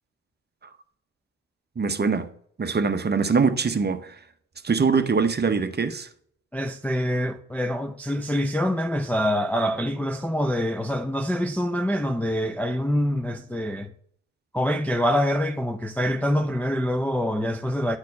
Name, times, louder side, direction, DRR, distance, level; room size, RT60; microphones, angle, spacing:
voice 1, 1.8-2.3 2.6-4.1 4.6-6.1, right 5 dB, 25° right, 0.9 m, -23 dB
voice 2, 6.5-13.9 14.5-18.0, equal, 5° left, 0.5 m, -25 dB
9.7 x 4.2 x 5.3 m
hypercardioid pair, 55°, 41 cm